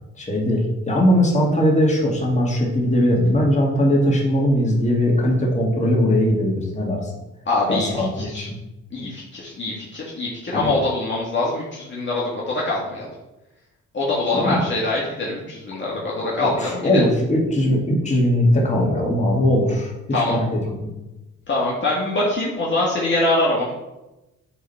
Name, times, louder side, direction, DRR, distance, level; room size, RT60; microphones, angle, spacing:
voice 1, 0.2-7.1 7.7-8.6 10.5-10.7 14.3-14.6 15.8-15.9 16.2-20.9, left 1 dB, 25° left, -2 dB, 2.3 m, -20 dB
voice 2, 7.4-8.5 8.9-13.1 13.9-17.0 20.1-20.4 21.5-23.7, left 2 dB, 40° left, -5 dB, 1.8 m, -24 dB
9.2 x 3.9 x 4.3 m, 0.99 s
cardioid pair, 90°, 30 cm